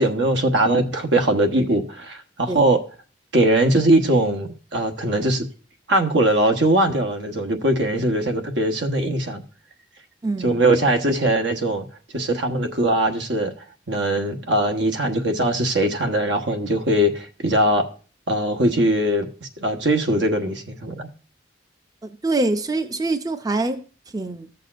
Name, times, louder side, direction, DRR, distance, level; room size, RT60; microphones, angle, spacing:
voice 1, 0.0-2.8 3.3-5.5 5.9-9.4 10.4-11.8 12.1-13.5 13.9-17.8 18.3-21.1, right 1 dB, 80° right, 1.2 m, -21 dB
voice 2, 10.2-10.6 22.2-23.8 24.1-24.5, right 2 dB, 20° right, 0.5 m, -24 dB
14.5 x 6.7 x 2.5 m
head